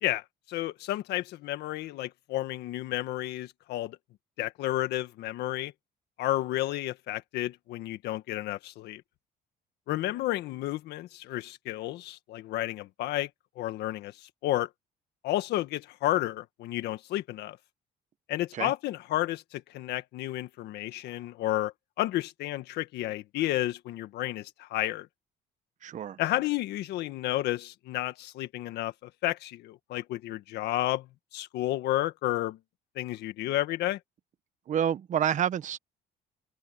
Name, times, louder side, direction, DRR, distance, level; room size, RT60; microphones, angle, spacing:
voice 1, 0.0-4.0 4.4-5.7 6.2-9.0 9.9-13.3 13.5-14.7 15.2-17.6 18.3-25.1 26.2-32.6 32.9-34.0, left 15 dB, 80° left, 1.6 m, -31 dB
voice 2, 25.8-26.2 34.7-35.8, right 9 dB, 45° right, 1.0 m, -28 dB
open air
cardioid pair, 110°, 17 cm